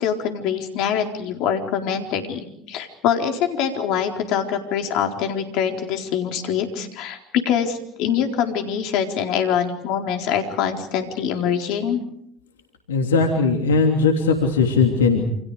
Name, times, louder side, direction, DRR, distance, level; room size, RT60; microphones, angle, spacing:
voice 1, 0.0-12.0, left 8 dB, 65° left, 4 dB, 4.2 m, -24 dB
voice 2, 12.9-15.4, left 4 dB, 85° left, 3 dB, 3.0 m, -19 dB
29.0 x 28.5 x 5.0 m, 0.71 s
hypercardioid pair, 70°, 0 cm